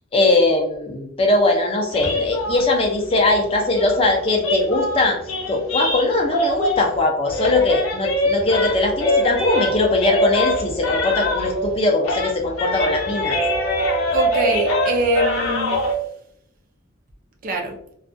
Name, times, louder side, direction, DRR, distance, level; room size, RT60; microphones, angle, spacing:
voice 1, 0.1-5.2 5.5-13.4, left 2 dB, 25° left, 2 dB, 0.4 m, -20 dB
sound 1, 1.9-7.0 7.3-11.8 12.0-15.9, left 1 dB, 80° left, 0.6 m, -23 dB
voice 2, 14.1-15.8 17.4-17.8, right 2 dB, 45° right, 3 dB, 0.4 m, -23 dB
2.3 x 2.2 x 2.5 m, 0.73 s
head